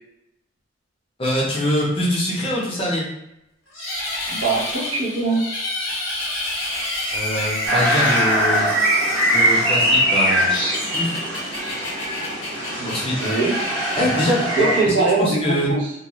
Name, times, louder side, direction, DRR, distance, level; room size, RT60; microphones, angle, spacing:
voice 1, 1.2-3.1 7.1-8.7 9.3-10.6 10.9-11.1 12.9-13.1 14.0-15.7, equal, 25° left, -4 dB, 0.6 m, -23 dB
sound 1, 3.7-15.0, left 1 dB, 60° left, 0.8 m, -29 dB
voice 2, 4.3-5.4 12.8-13.5 14.6-15.9, right 3 dB, 60° right, -3 dB, 0.7 m, -22 dB
sound 2, 7.7-14.8, equal, 90° right, 0.9 m, -21 dB
2.3 x 2.1 x 2.9 m, 0.84 s
head